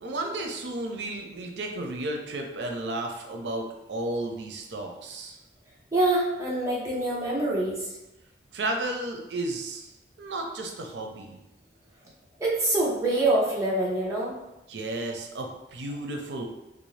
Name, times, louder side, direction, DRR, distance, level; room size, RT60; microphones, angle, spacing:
voice 1, 0.0-5.4 8.5-9.9 10.2-11.4 14.7-16.4, right 2 dB, 85° right, 3 dB, 0.5 m, -33 dB
voice 2, 5.9-7.9 12.4-14.4, right 2 dB, 15° right, -6 dB, 0.9 m, -25 dB
3.4 x 2.6 x 3.2 m, 0.94 s
head